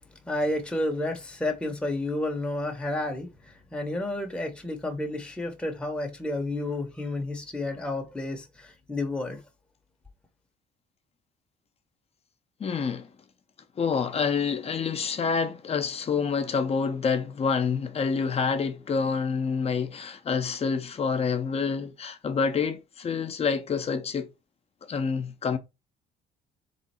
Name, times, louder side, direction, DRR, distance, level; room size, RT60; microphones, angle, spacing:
voice 1, 0.2-9.4, left 2 dB, 5° left, 0.9 m, -31 dB
voice 2, 12.6-13.1 13.8-24.3 24.8-25.6, left 5 dB, 35° left, 0.8 m, -27 dB
3.6 x 3.2 x 4.3 m
cardioid pair, 110°, 17 cm